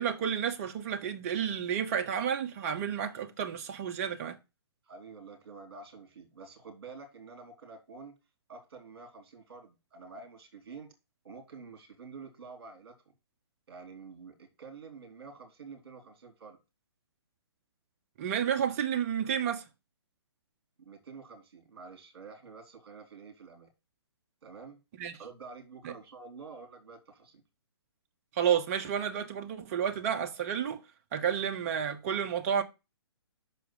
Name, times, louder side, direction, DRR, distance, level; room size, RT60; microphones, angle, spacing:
voice 1, 0.0-4.4 18.2-19.6 25.0-25.2 25.8-25.9 28.4-30.8 31.1-32.6, right 8 dB, 30° right, 0.9 m, -31 dB
voice 2, 4.9-8.2 8.5-10.9 11.2-13.0 13.7-16.6 20.8-23.7 24.4-24.8 25.2-27.4, right 4 dB, 55° right, 3.2 m, -48 dB
6.1 x 4.6 x 6.4 m
figure-of-eight pair, 130°, 14 cm